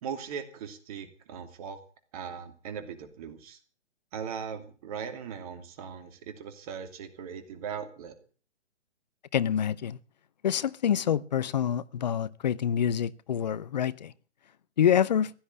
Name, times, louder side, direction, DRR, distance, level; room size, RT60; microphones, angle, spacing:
voice 1, 0.0-1.8 2.1-3.6 4.1-8.1, right 7 dB, 30° right, 2.8 m, -39 dB
voice 2, 9.3-10.0 10.4-14.1 14.8-15.3, left 9 dB, 35° left, 0.8 m, -26 dB
16.0 x 11.0 x 7.7 m
figure-of-eight pair, 135°, 35 cm